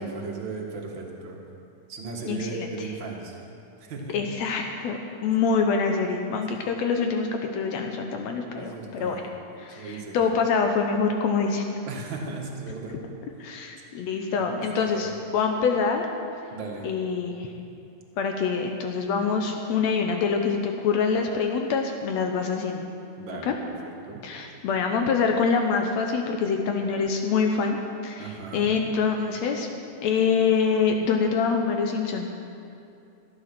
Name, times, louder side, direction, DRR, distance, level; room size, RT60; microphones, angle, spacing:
voice 1, 0.0-1.4 1.9-3.4 3.8-4.2 8.5-9.2 9.7-10.2 11.8-13.0 14.3-15.1 16.5-16.9 23.2-24.2 28.2-28.7, right 4 dB, 45° right, -1 dB, 1.8 m, -37 dB
voice 2, 2.3-2.7 4.1-9.2 9.6-11.7 13.4-16.1 16.8-17.5 18.2-22.9 23.3-23.6 24.2-27.8 28.0-29.7 30.0-32.3, left 5 dB, 70° left, 3 dB, 1.8 m, -25 dB
15.0 x 9.2 x 6.0 m, 2.6 s
omnidirectional pair, 3.7 m